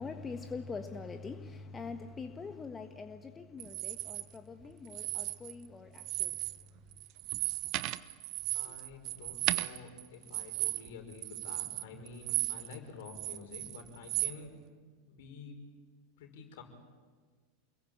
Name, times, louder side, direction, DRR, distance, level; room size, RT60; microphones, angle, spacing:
voice 1, 0.0-6.3, left 4 dB, 20° left, 7 dB, 1.5 m, -43 dB
sound 1, 3.6-4.2 4.9-5.7 6.0-6.6 6.9-12.8 13.1-14.4, right 18 dB, 45° right, 1.0 m, -35 dB
voice 2, 8.5-14.5 15.0-15.6 16.2-16.6, left 5 dB, 60° left, 4 dB, 5.6 m, -49 dB
29.0 x 22.0 x 8.9 m, 1.5 s
figure-of-eight pair, 85°, 0 cm